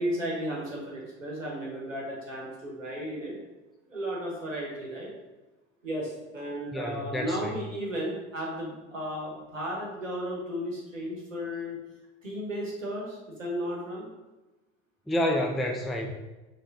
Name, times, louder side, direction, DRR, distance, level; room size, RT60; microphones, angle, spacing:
voice 1, 0.0-3.3 3.9-5.1 5.8-11.8 12.2-14.1, equal, 90° right, -3 dB, 1.2 m, -34 dB
voice 2, 6.7-7.6 15.1-16.1, left 1 dB, ahead, 2 dB, 0.4 m, -29 dB
3.6 x 3.4 x 4.1 m, 1.1 s
figure-of-eight pair, 65°, 37 cm